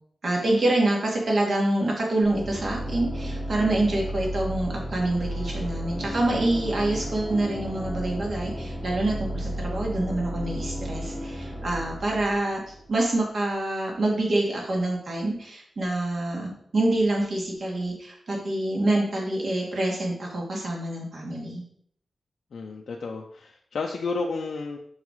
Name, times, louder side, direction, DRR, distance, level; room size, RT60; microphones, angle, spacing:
voice 1, 0.2-12.6 12.9-21.6, right 2 dB, 60° right, -1 dB, 2.1 m, -26 dB
sound 1, 2.2-13.0, equal, 15° right, 2.0 m, -33 dB
voice 2, 22.5-24.8, left 3 dB, 80° left, 0 dB, 0.6 m, -31 dB
5.6 x 5.6 x 4.7 m, 0.65 s
wide cardioid pair, 160°, 0 cm